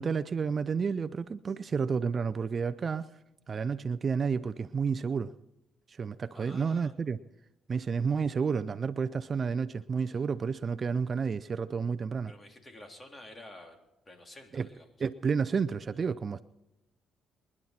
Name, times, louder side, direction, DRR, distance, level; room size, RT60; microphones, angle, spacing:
voice 1, 0.0-3.1 3.5-5.3 5.9-7.2 7.7-12.3 14.5-14.7 15.0-16.4, right 5 dB, 40° right, 12 dB, 0.6 m, -30 dB
voice 2, 6.3-6.9 10.1-10.2 12.3-15.1, left 1 dB, 25° left, 4 dB, 3.4 m, -51 dB
26.5 x 11.0 x 4.4 m, 0.93 s
cardioid pair, 90°, 0 cm